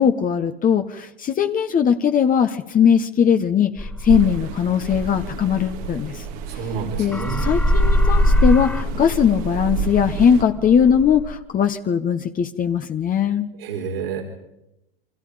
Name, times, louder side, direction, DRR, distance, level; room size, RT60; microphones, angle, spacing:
voice 1, 0.0-6.2 6.5-6.6 7.0-13.5, left 8 dB, 30° left, 6 dB, 1.4 m, -19 dB
sound 1, 3.8-6.8 7.1-11.3, equal, 5° left, 1.4 m, -22 dB
sound 2, 4.1-10.4, right 8 dB, 60° right, 2.3 m, -31 dB
voice 2, 6.5-7.5 13.6-14.2, right 5 dB, 80° right, 0 dB, 4.7 m, -29 dB
29.5 x 24.5 x 5.2 m, 0.90 s
hypercardioid pair, 100°, 29 cm